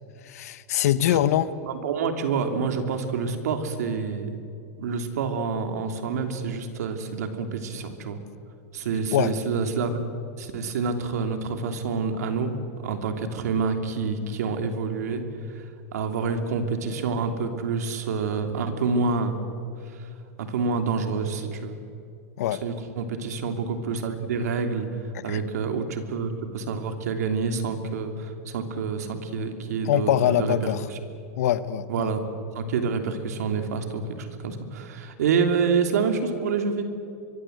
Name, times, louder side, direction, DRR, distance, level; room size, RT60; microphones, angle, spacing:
voice 1, 0.2-1.5 9.1-9.3 22.4-22.6 25.1-25.4 29.8-30.8 31.4-32.1, left 12 dB, 75° left, 14 dB, 1.2 m, -23 dB
voice 2, 1.6-4.4 4.8-8.2 8.7-10.0 10.4-12.6 12.8-15.2 15.5-19.4 19.9-20.1 20.4-21.8 22.6-24.9 25.2-31.0 31.9-32.2 32.5-36.8, right 5 dB, 85° right, 6 dB, 3.1 m, -27 dB
24.5 x 23.0 x 8.1 m, 2.5 s
supercardioid pair, 135°, 8 cm